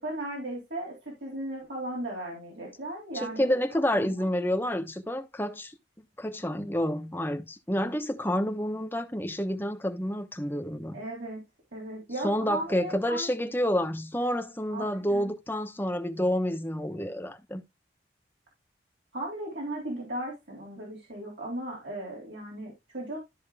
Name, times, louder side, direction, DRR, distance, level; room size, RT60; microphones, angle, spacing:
voice 1, 0.0-3.6 3.9-4.1 10.9-11.4 11.7-13.3 14.7-15.3 19.1-23.2, right 1 dB, 80° right, 3.5 m, -36 dB
voice 2, 3.1-5.7 6.2-11.0 12.2-17.6, equal, 10° left, 1.0 m, -29 dB
13.0 x 5.2 x 2.4 m
head